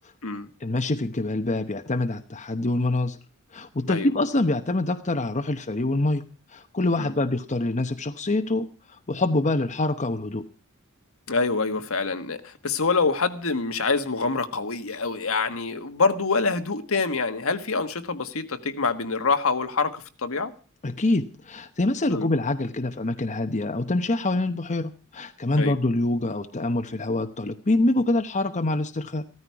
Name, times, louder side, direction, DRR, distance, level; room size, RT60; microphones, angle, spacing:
voice 1, 0.6-3.2 3.5-10.4 20.8-29.2, left 2 dB, 35° left, 0.9 m, -25 dB
voice 2, 11.3-20.5 22.1-22.3 25.6-25.8, left 4 dB, 65° left, 1.5 m, -26 dB
15.5 x 14.0 x 4.7 m
head